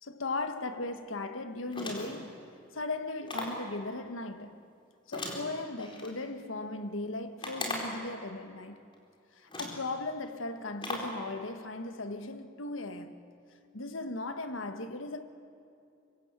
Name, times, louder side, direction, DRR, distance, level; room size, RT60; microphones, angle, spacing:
voice 1, 0.0-2.4 2.7-4.6 5.1-8.8 9.3-13.2 13.7-15.2, left 2 dB, 90° left, 1.5 m, -37 dB
sound 1, 1.7-2.3 3.3-3.7 5.1-6.1 7.4-8.1 8.9-9.0 9.5-9.9 10.8-11.2, left 2 dB, 25° left, 4.3 m, -37 dB
24.5 x 24.5 x 8.2 m
head